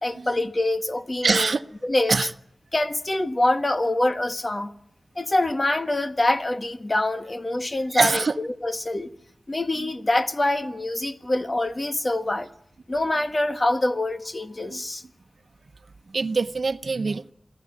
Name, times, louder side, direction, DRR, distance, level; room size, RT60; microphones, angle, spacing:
voice 1, 0.0-1.6 1.8-2.2 2.7-4.7 5.1-9.1 9.5-12.5 12.9-15.0, left 1 dB, 35° left, 1.7 m, -25 dB
voice 2, 1.2-1.6 2.1-2.3 7.9-8.4 9.8-9.9 14.7-14.8 16.1-17.2, right 4 dB, 70° right, 1.0 m, -23 dB
28.5 x 18.0 x 10.0 m
wide cardioid pair, 80°, 0 cm